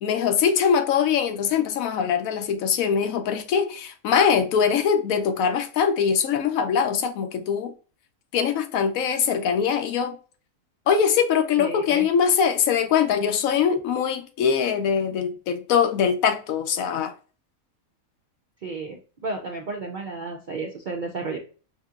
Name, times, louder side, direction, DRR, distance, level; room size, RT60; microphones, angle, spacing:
voice 1, 0.0-7.7 8.3-10.2 10.9-17.1, left 7 dB, 85° left, 1.0 m, -22 dB
voice 2, 11.6-12.1 18.6-21.4, right 3 dB, 65° right, 0.4 m, -32 dB
5.0 x 2.8 x 2.4 m
omnidirectional pair, 1.4 m